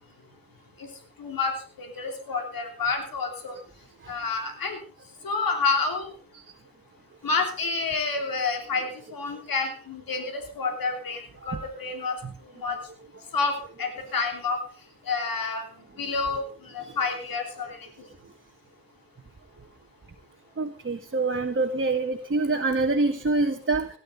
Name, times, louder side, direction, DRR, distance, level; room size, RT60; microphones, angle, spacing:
voice 1, 1.2-1.5 1.8-3.5 4.1-4.8 5.2-6.1 7.2-11.2 11.5-12.2 12.6-12.8 13.3-13.5 13.8-14.6 15.1-15.6 16.0-16.4 16.7-17.8, left 4 dB, 85° left, 4 dB, 3.3 m, -28 dB
voice 2, 20.6-23.9, right 3 dB, 35° right, 3 dB, 1.7 m, -25 dB
17.5 x 11.5 x 4.0 m, 0.40 s
cardioid pair, 50°, 34 cm